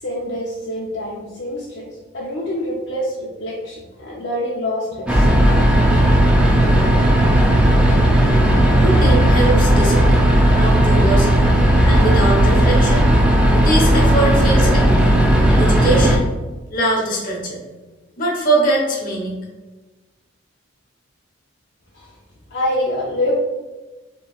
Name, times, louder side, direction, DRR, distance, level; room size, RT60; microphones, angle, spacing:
voice 1, 0.0-5.4 21.9-22.1 22.5-23.4, left 1 dB, 60° left, -5 dB, 0.6 m, -26 dB
sound 1, 5.1-16.2, right 1 dB, 5° right, 0.4 m, -14 dB
voice 2, 8.7-11.5 11.8-13.1 13.6-15.1 15.5-16.3 16.7-17.6 18.2-19.4, right 2 dB, 45° left, -1 dB, 1.0 m, -22 dB
5.2 x 3.1 x 2.4 m, 1.2 s
head